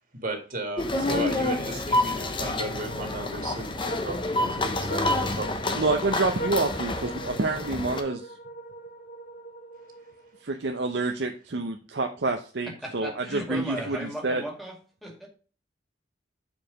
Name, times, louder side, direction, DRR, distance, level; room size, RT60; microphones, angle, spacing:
voice 1, 0.2-5.9, right 1 dB, 45° right, 3 dB, 2.0 m, -35 dB
sound 1, 0.8-8.0, left 2 dB, 25° left, 0.8 m, -28 dB
sound 2, 2.9-10.4, right 1 dB, 45° left, 1.1 m, -41 dB
voice 2, 5.8-8.3 10.4-14.4, right 3 dB, 65° right, 4 dB, 0.7 m, -28 dB
voice 3, 12.7-15.3, right 1 dB, ahead, 0 dB, 2.1 m, -37 dB
7.3 x 4.9 x 5.1 m, 0.38 s
head